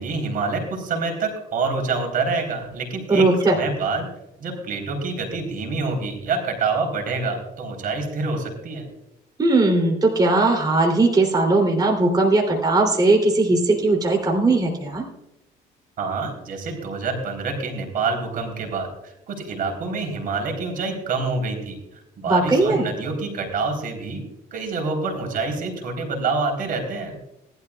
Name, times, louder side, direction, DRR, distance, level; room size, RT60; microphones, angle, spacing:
voice 1, 0.0-4.1 4.4-8.9 16.0-21.8 22.2-24.2 24.5-27.2, right 4 dB, 55° right, 3 dB, 3.8 m, -27 dB
voice 2, 3.1-3.5 9.4-15.0 22.3-22.8, right 2 dB, 25° right, 0 dB, 3.2 m, -19 dB
19.5 x 12.0 x 2.4 m, 0.87 s
cardioid pair, 110°, 17 cm